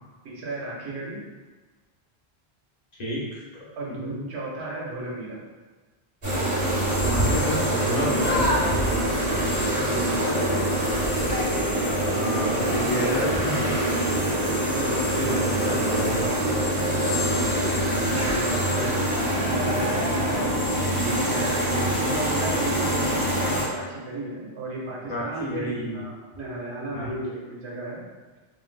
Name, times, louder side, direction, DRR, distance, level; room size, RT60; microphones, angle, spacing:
voice 1, 0.2-1.2 3.8-5.4 9.7-10.7 14.7-15.4 16.5-17.1 17.6-20.5 21.0-28.0, right 2 dB, 90° right, -4 dB, 1.1 m, -34 dB
voice 2, 3.0-3.4 3.9-4.2 7.0-8.8 12.1-13.8 15.1-16.3 25.1-26.0 26.9-27.1, left 1 dB, 40° left, -8 dB, 0.9 m, -30 dB
sound 1, 6.2-23.6, right 1 dB, 30° right, 1.1 m, -24 dB
3.1 x 2.7 x 2.3 m, 1.3 s
omnidirectional pair, 1.1 m